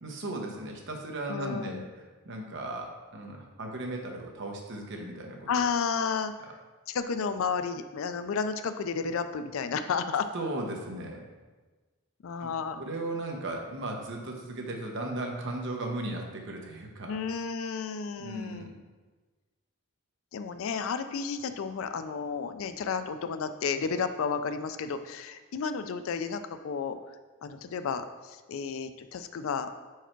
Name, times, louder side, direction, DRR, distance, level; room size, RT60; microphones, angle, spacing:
voice 1, 0.0-5.6 10.3-11.2 12.4-12.5 12.8-17.2 18.2-18.7, right 2 dB, 55° right, 1 dB, 0.9 m, -36 dB
voice 2, 1.3-1.8 5.5-6.3 6.9-10.3 12.2-12.8 17.1-18.7 20.3-27.0 27.4-29.7, left 5 dB, 60° left, 10 dB, 0.4 m, -32 dB
4.7 x 4.5 x 4.4 m, 1.3 s
head